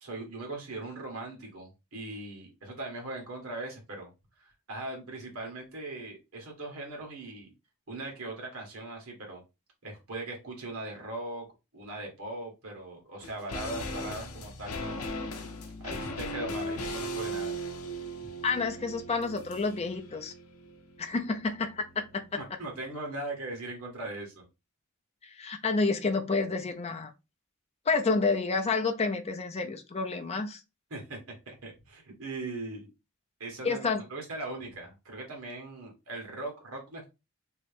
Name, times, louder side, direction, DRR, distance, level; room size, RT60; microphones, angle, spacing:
voice 1, 0.0-4.1 4.4-7.5 7.9-9.4 9.8-11.5 11.7-15.1 15.8-17.5 22.4-24.5 30.9-31.2 31.4-32.9 33.4-33.8 34.1-37.1, right 2 dB, 75° right, 1.5 m, -39 dB
sound 1, 13.2-22.6 22.8-22.9, equal, 90° left, 0.6 m, -38 dB
voice 2, 18.4-20.3 21.0-22.4 25.2-27.1 27.9-30.6 33.6-34.0, left 4 dB, 30° left, 0.4 m, -29 dB
3.1 x 2.9 x 3.2 m
head